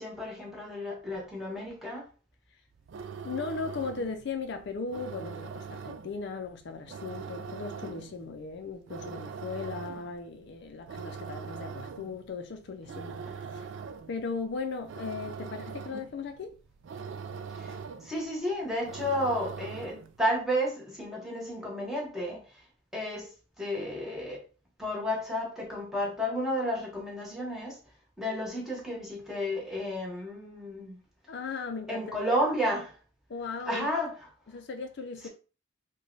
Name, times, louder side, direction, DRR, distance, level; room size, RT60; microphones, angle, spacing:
voice 1, 0.0-2.1 17.6-17.7 18.0-22.4 22.9-24.4 24.8-27.8 28.2-31.0 31.9-32.9 33.7-34.1 35.2-35.3, equal, ahead, 1.1 m, -32 dB
sound 1, 2.7-20.2, right 6 dB, 65° right, 0.3 m, -42 dB
voice 2, 3.2-13.2 13.5-13.7 14.1-16.6 31.3-32.2 33.3-33.9 34.5-35.3, left 4 dB, 55° left, 0.4 m, -37 dB
3.1 x 2.2 x 3.8 m
head